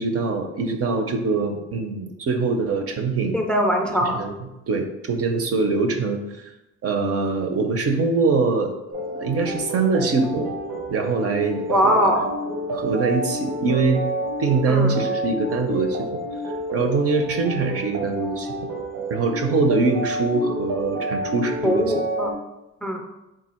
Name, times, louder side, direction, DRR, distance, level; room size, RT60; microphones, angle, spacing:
voice 1, 0.0-3.4 4.0-4.3 4.7-6.5 6.8-8.7 9.2-10.5 10.9-11.9 12.7-14.0 14.4-16.2 16.7-18.5 19.1-21.9, right 4 dB, 50° right, 5 dB, 0.6 m, -23 dB
voice 2, 3.3-4.3 11.7-12.3 14.7-15.1 21.6-22.3 22.8-23.0, equal, 5° left, 2 dB, 0.4 m, -21 dB
sound 1, 8.9-22.3, right 1 dB, 80° right, 1.0 m, -29 dB
3.7 x 2.3 x 4.3 m, 0.95 s
cardioid pair, 90°, 30 cm